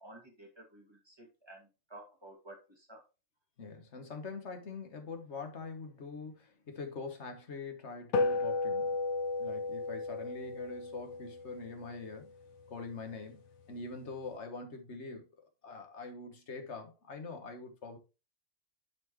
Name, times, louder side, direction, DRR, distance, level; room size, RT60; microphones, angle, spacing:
voice 1, 0.0-3.0, right 1 dB, 20° right, 2.2 m, -53 dB
voice 2, 3.6-9.0 9.4-12.3 12.7-13.4 13.7-15.3 15.6-18.0, left 4 dB, 55° left, 1.6 m, -44 dB
sound 1, 8.1-12.8, left 3 dB, 85° left, 1.3 m, -34 dB
10.5 x 4.4 x 3.1 m
omnidirectional pair, 1.4 m